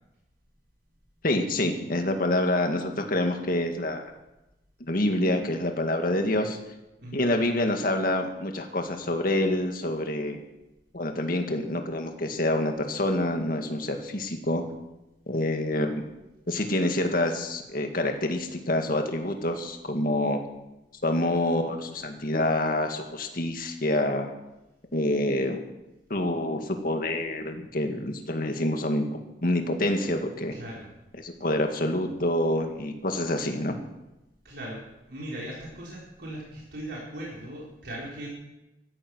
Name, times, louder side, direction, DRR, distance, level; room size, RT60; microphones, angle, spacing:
voice 1, 1.2-4.1 4.8-6.6 7.1-10.4 10.9-14.6 15.3-16.0 16.5-20.4 21.0-24.3 24.9-25.6 26.1-29.1 29.4-30.5 31.2-33.8, left 1 dB, 55° left, 4 dB, 2.1 m, -27 dB
voice 2, 7.0-7.3 30.5-30.9 34.4-34.8 35.1-38.3, right 1 dB, 65° right, -4 dB, 4.5 m, -39 dB
15.5 x 14.5 x 6.3 m, 0.96 s
head